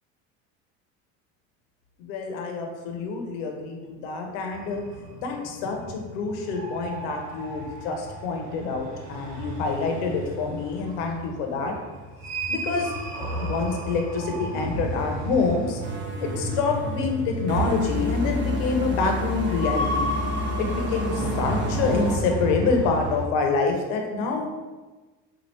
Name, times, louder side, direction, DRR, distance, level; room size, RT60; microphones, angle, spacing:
voice 1, 2.0-4.8 5.2-11.7 12.5-12.9 13.4-15.8 16.2-20.1 20.6-24.5, left 4 dB, 80° left, 2 dB, 0.7 m, -27 dB
sound 1, 4.5-23.3, equal, 70° right, 1.1 m, -33 dB
sound 2, 15.8-22.2, equal, 35° right, 0.7 m, -30 dB
4.2 x 2.4 x 3.2 m, 1.2 s
supercardioid pair, 90°, 35 cm